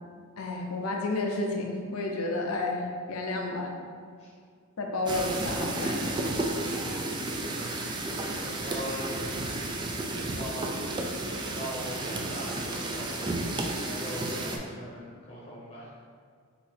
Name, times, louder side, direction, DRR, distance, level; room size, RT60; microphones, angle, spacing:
voice 1, 0.4-3.7 4.8-6.0, left 2 dB, 75° left, 1 dB, 0.6 m, -31 dB
sound 1, 5.1-14.6, right 2 dB, 20° right, 0.4 m, -32 dB
voice 2, 7.3-7.9 8.4-9.1 10.2-10.9 11.4-13.3 13.8-15.9, equal, 25° left, -6 dB, 0.8 m, -41 dB
4.0 x 2.7 x 4.3 m, 2.1 s
head